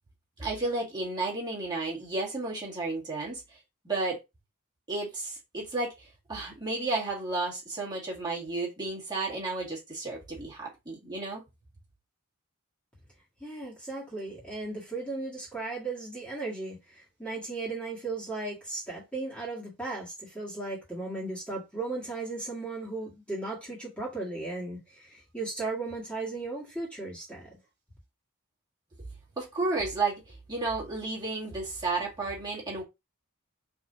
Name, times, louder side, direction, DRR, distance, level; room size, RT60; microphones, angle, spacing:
voice 1, 0.4-3.6 3.8-4.2 4.9-11.4 29.4-32.8, right 3 dB, 20° right, 1.9 m, -32 dB
voice 2, 13.4-25.1 25.3-27.5, right 3 dB, 5° left, 1.8 m, -36 dB
4.7 x 3.7 x 2.7 m
head